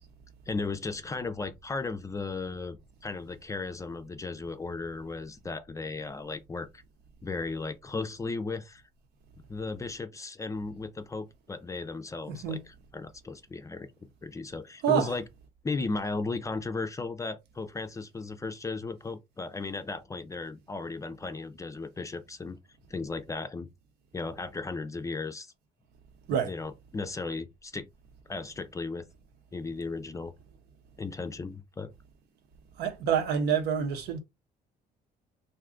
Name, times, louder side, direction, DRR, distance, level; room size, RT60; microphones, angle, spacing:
voice 1, 0.5-6.8 7.2-8.8 9.5-13.9 14.2-15.3 15.6-22.6 22.9-23.7 24.1-25.5 26.3-27.9 28.3-29.0 29.5-30.3 31.0-31.9, left 3 dB, 20° left, 0.4 m, -36 dB
voice 2, 12.3-12.6 14.8-15.1 26.3-26.5 32.8-34.2, right 8 dB, 80° right, 0.8 m, -27 dB
2.6 x 2.3 x 3.7 m
cardioid pair, 110°, 17 cm